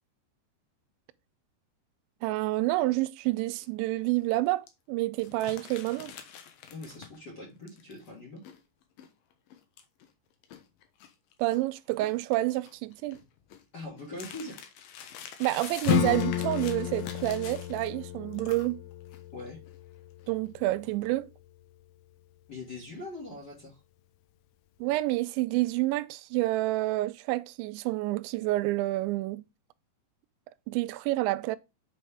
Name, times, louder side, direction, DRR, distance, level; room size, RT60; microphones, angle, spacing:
voice 1, 2.2-6.1 11.4-13.2 15.4-18.8 20.3-21.3 24.8-29.5 30.7-31.6, right 18 dB, 90° right, 2.9 m, -28 dB
sound 1, 3.6-3.9 4.1-4.2 4.7-4.8 5.2-7.3 7.7-11.6 11.9-18.1 18.3-19.2 19.5-19.8 20.2-20.5, left 8 dB, 70° left, 2.4 m, -46 dB
voice 2, 6.7-8.4 13.7-14.6 19.3-19.6 22.5-23.8, left 2 dB, 30° left, 2.5 m, -42 dB
Acoustic guitar / Strum, 15.9-21.1, left 13 dB, 90° left, 3.0 m, -32 dB
8.4 x 5.2 x 3.4 m
omnidirectional pair, 5.1 m